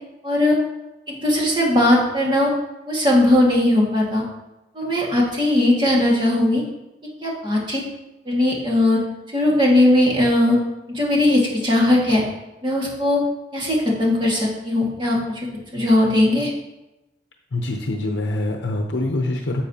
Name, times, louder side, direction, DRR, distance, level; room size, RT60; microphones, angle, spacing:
voice 1, 0.2-0.6 1.1-2.5 2.9-4.2 4.8-6.6 7.2-7.8 8.3-9.0 9.3-10.6 10.9-12.2 12.6-13.2 13.5-16.5, left 1 dB, 25° right, -3 dB, 1.8 m, -19 dB
voice 2, 17.5-19.6, left 2 dB, 80° left, 2 dB, 0.7 m, -24 dB
10.0 x 7.3 x 2.8 m, 0.97 s
head